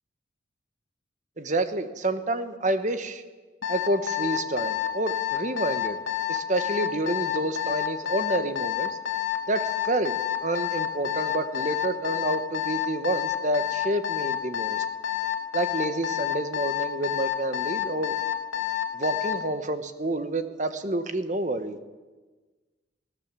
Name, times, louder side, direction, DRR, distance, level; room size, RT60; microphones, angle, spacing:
voice 1, 1.4-3.2 3.7-6.0 6.3-8.9 9.5-10.1 10.4-14.8 15.5-18.1 18.9-21.8, right 1 dB, 40° right, 10 dB, 1.3 m, -28 dB
Alarm, 3.6-19.4, left 12 dB, 90° left, 2.1 m, -28 dB
20.0 x 18.5 x 7.5 m, 1.3 s
head